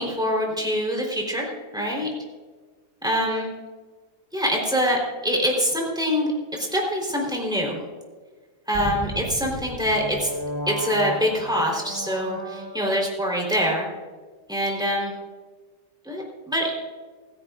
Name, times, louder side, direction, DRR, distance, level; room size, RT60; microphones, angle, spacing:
voice 1, 0.0-2.1 3.0-3.5 4.3-7.8 8.7-10.3 10.7-13.9 14.5-15.1 16.0-16.7, equal, ahead, -1 dB, 3.7 m, -25 dB
sound 1, 8.7-13.2, right 1 dB, 25° right, 1.1 m, -34 dB
28.0 x 10.5 x 2.5 m, 1.4 s
omnidirectional pair, 2.0 m